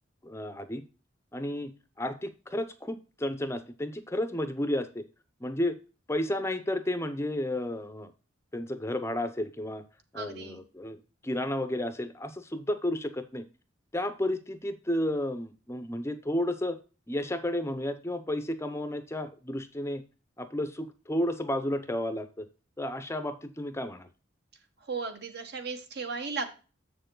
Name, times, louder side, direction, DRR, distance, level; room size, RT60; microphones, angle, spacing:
voice 1, 0.2-0.8 1.3-5.0 5.4-5.7 6.1-8.1 8.5-9.8 10.1-13.4 13.9-16.8 17.1-20.0 20.4-22.5 22.8-24.1, left 1 dB, 15° left, 10 dB, 0.6 m, -32 dB
voice 2, 10.1-10.6 24.9-26.5, right 4 dB, 55° right, 7 dB, 1.3 m, -35 dB
7.4 x 6.8 x 3.8 m, 0.34 s
head